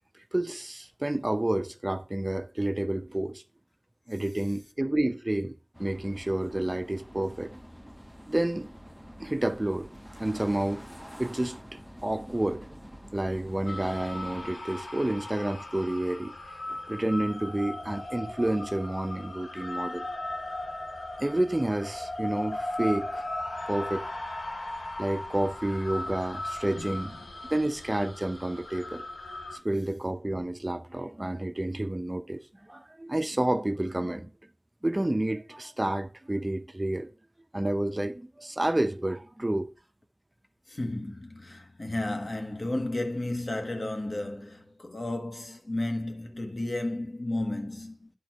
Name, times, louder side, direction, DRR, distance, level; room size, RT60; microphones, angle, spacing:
voice 1, 0.3-3.4 4.1-7.5 8.3-8.7 9.2-9.9 10.2-10.9 11.2-12.7 13.1-16.3 16.7-20.1 21.2-23.3 23.7-24.1 25.0-27.1 27.5-29.0 29.5-34.3 34.8-37.1 37.5-39.7, right 1 dB, 25° right, 0.6 m, -30 dB
sound 1, 5.7-14.5, equal, 5° left, 0.8 m, -47 dB
sound 2, 13.7-29.6, left 1 dB, 80° left, 1.1 m, -37 dB
voice 2, 26.7-27.2 29.7-29.8 40.7-48.1, left 1 dB, 55° left, 1.4 m, -33 dB
10.5 x 4.6 x 4.5 m
wide cardioid pair, 45°, 0 cm